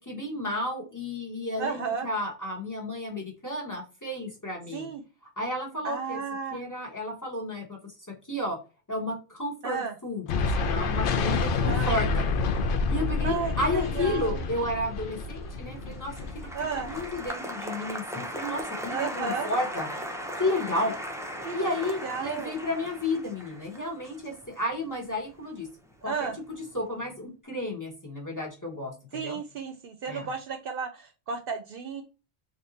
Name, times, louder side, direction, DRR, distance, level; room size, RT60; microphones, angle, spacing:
voice 1, 0.0-4.9 5.4-6.2 6.5-7.9 8.3-8.6 8.9-12.3 12.9-16.1 16.7-19.9 20.3-20.9 21.5-25.7 26.0-26.3 26.7-29.4 30.1-30.3, left 1 dB, 20° left, 1 dB, 1.0 m, -32 dB
voice 2, 1.6-2.1 4.7-5.0 5.8-6.7 9.6-9.9 11.6-12.0 13.2-14.5 16.5-16.9 18.9-19.5 21.4-22.6 26.0-26.4 29.1-32.0, right 5 dB, 65° right, 7 dB, 0.7 m, -33 dB
sound 1, 10.3-17.3, left 4 dB, 60° left, 0.7 m, -28 dB
Applause, 15.5-25.9 26.2-26.8, equal, 5° right, 0.3 m, -38 dB
3.5 x 2.7 x 3.9 m, 0.32 s
omnidirectional pair, 1.1 m